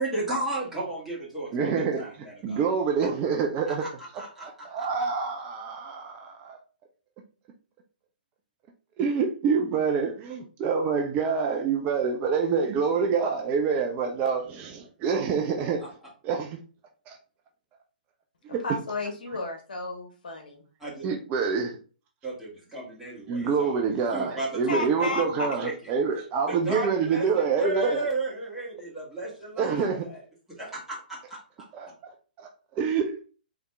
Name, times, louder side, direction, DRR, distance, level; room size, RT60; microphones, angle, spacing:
voice 1, 0.0-2.6 3.7-4.7 15.8-15.9 20.8-21.1 22.2-23.8 24.1-25.7 26.5-30.2 30.6-31.4, right 2 dB, 5° right, 2.2 m, -34 dB
voice 2, 1.5-3.9 4.1-6.6 9.0-15.8 16.2-16.6 17.1-17.2 18.5-18.6 21.0-21.8 23.3-28.1 29.6-30.1 31.7-31.9 32.4-33.2, right 5 dB, 25° right, 0.6 m, -27 dB
voice 3, 18.6-20.6 24.7-25.5, left 2 dB, 60° left, 1.5 m, -32 dB
4.2 x 3.5 x 3.6 m
figure-of-eight pair, 120°, 5 cm